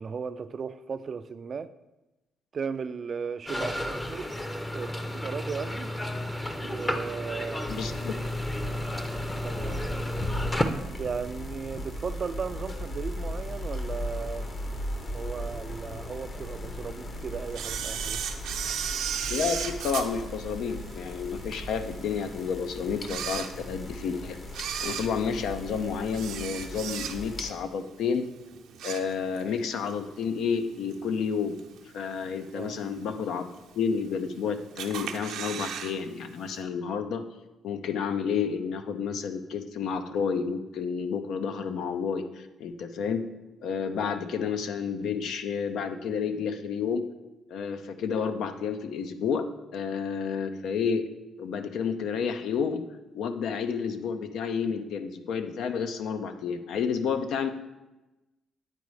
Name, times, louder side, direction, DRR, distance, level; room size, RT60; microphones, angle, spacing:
voice 1, 0.0-1.7 2.5-4.4 4.7-5.9 6.6-7.7 9.4-9.8 11.0-14.7 15.1-18.2 32.5-32.8, right 6 dB, 45° right, 0.3 m, -36 dB
sound 1, 3.5-10.6, left 1 dB, 15° left, 0.6 m, -32 dB
voice 2, 7.6-8.2 19.3-24.4 24.8-28.3 28.8-31.6 31.9-33.5 33.7-37.3 37.6-43.2 43.6-47.0 47.5-49.4 49.7-51.1 51.4-52.8 53.1-57.5, left 6 dB, 75° left, 0.6 m, -30 dB
sound 2, 7.7-27.5, left 1 dB, 40° left, 0.9 m, -38 dB
Camera, 17.5-21.1 21.6-21.7 22.4-22.5 23.0-24.0 24.5-27.5 27.8-28.1 28.5-29.5 29.9-30.0 30.9-31.0 31.6-32.0 32.4-32.5 32.7-32.8 33.0-33.1 33.8-34.3 34.8-35.9 36.2-36.3 36.5-36.6, right 8 dB, 85° right, 0.7 m, -34 dB
9.3 x 4.2 x 4.8 m
cardioid pair, 90°, 0 cm